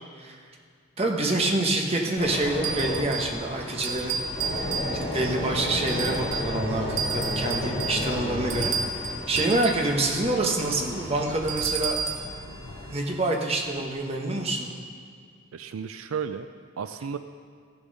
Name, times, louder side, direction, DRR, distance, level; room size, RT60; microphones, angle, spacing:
voice 1, 1.0-4.2 4.5-4.6 5.0-8.7 9.0-12.0 12.9-14.7, right 2 dB, 30° right, 0 dB, 1.1 m, -27 dB
sound 1, 2.2-13.1 13.7-13.9, left 1 dB, 35° left, 2.9 m, -33 dB
sound 2, 2.6-3.4 3.8-5.3 5.9-6.6 7.0-9.9 11.5-12.3, right 5 dB, 60° right, 1.1 m, -31 dB
sound 3, 3.8-12.9, left 2 dB, 80° left, 0.7 m, -44 dB
voice 2, 15.5-16.5 16.8-17.2, right 6 dB, 80° right, 9 dB, 0.4 m, -33 dB
14.5 x 7.0 x 5.4 m, 2.1 s
head